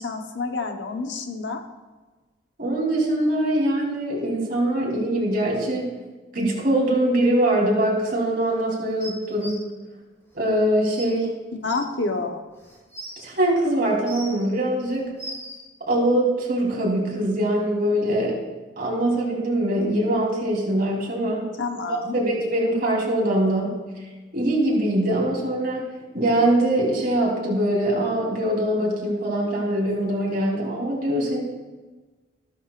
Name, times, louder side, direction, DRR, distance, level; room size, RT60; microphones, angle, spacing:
voice 1, 0.0-1.6 11.6-12.4 21.6-22.1, left 3 dB, 75° left, 4 dB, 1.1 m, -28 dB
voice 2, 2.6-5.9 6.3-9.6 10.3-11.3 13.2-15.1 15.9-18.4 18.8-21.5 21.9-23.8 24.3-25.8 26.1-31.4, right 1 dB, 55° right, -3 dB, 3.6 m, -23 dB
sound 1, 9.0-9.5 10.6-10.7 11.0-11.1 11.7-11.8 12.6-13.2 13.8-14.4 14.9-15.6 16.6-16.7, right 1 dB, 15° left, 4.1 m, -38 dB
14.5 x 12.5 x 2.5 m, 1.3 s
head